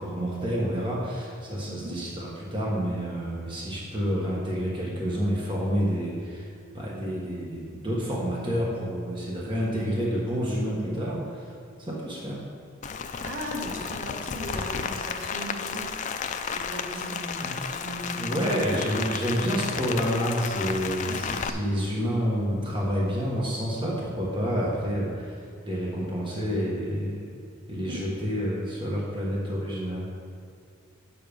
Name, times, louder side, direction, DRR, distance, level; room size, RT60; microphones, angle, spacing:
voice 1, 0.0-11.5 11.8-12.4 17.4-17.5 18.1-27.3 27.7-30.3, equal, 25° right, -4 dB, 1.4 m, -29 dB
voice 2, 1.7-2.1 13.2-15.9 16.5-18.3 18.7-18.9 21.0-21.2 27.9-28.0, right 1 dB, 70° right, -3 dB, 1.9 m, -37 dB
Rain, 12.8-21.5, left 6 dB, 35° left, 0.4 m, -33 dB
8.7 x 7.1 x 5.3 m, 2.3 s
head